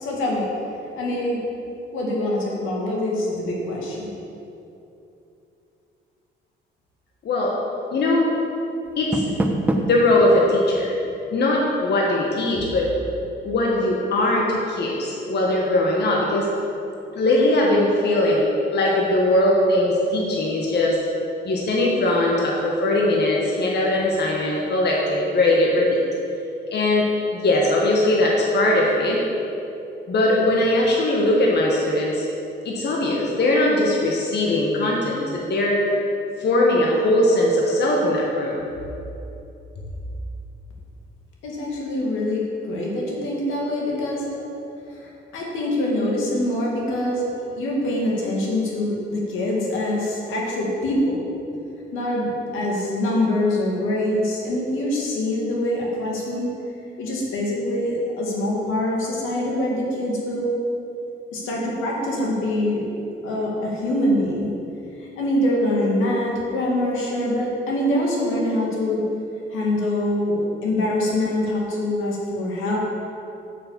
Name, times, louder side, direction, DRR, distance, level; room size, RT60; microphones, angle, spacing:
voice 1, 0.0-0.5 1.0-1.4 1.9-4.1 41.4-44.4 45.0-47.3 47.5-51.2 51.9-56.5 57.0-60.5 61.3-62.9 63.2-64.5 65.2-69.0 69.5-72.8, left 1 dB, 85° left, -3 dB, 2.1 m, -24 dB
voice 2, 7.9-8.3 9.0-9.2 9.8-10.9 11.3-12.9 13.4-16.5 17.1-21.0 21.4-25.9 26.7-27.1 27.4-29.2 30.1-32.3 32.6-35.8 36.4-38.6, left 1 dB, 55° left, -3 dB, 1.5 m, -20 dB
Door, 8.8-10.1, right 1 dB, 5° right, 0.9 m, -24 dB
6.9 x 6.6 x 7.3 m, 2.8 s
cardioid pair, 90°, 20 cm